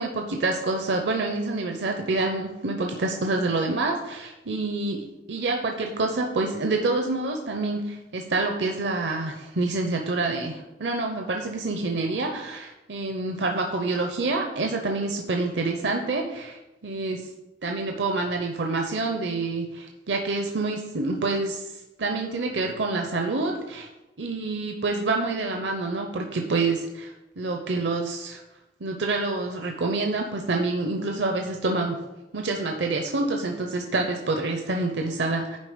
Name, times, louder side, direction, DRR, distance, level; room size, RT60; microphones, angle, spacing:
voice 1, 0.0-17.2 17.6-21.7 22.0-23.9 24.2-28.4 28.8-32.0 32.3-35.6, right 3 dB, 65° right, 3 dB, 0.7 m, -27 dB
9.7 x 3.8 x 5.0 m, 1.0 s
head